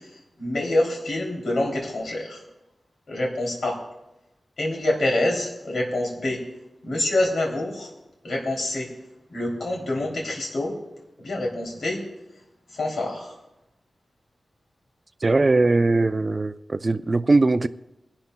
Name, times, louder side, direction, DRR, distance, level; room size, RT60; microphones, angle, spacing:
voice 1, 0.4-2.4 3.1-3.8 4.6-6.4 6.8-7.9 8.2-8.9 9.3-10.8 11.2-12.0 12.7-13.3, left 1 dB, 70° left, 0 dB, 2.9 m, -26 dB
voice 2, 15.2-17.7, right 3 dB, 30° right, 10 dB, 0.4 m, -20 dB
22.5 x 11.5 x 2.2 m, 0.94 s
wide cardioid pair, 125°, 0 cm